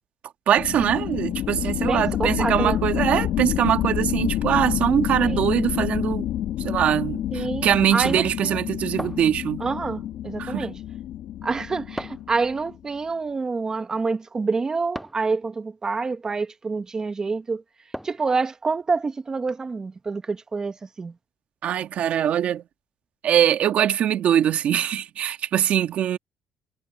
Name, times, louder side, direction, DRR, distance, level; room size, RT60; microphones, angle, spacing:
voice 1, 0.5-6.3 6.6-9.6 10.4-10.7 21.6-22.6 23.2-26.2, right 10 dB, 60° right, 1.6 m, -22 dB
sound 1, 0.6-12.8, left 12 dB, 70° left, 1.5 m, -28 dB
voice 2, 1.8-2.8 5.3-5.4 7.3-8.6 9.6-10.8 11.4-17.6 18.0-21.1, right 4 dB, 25° right, 1.4 m, -27 dB
sound 2, 9.0-9.9 12.0-12.4 14.9-15.4 17.9-18.4, equal, ahead, 7.6 m, -37 dB
cardioid pair, 120°, 3 cm